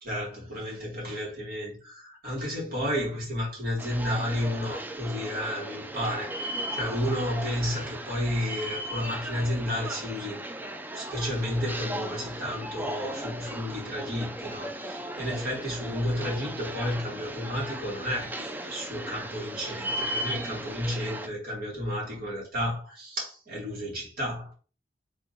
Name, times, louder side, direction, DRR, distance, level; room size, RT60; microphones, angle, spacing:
voice 1, 0.0-10.4 10.9-24.5, left 1 dB, 55° right, 2.7 m, -32 dB
sound 1, 3.8-21.3, right 1 dB, 10° right, 0.4 m, -36 dB
3.6 x 3.6 x 4.0 m
head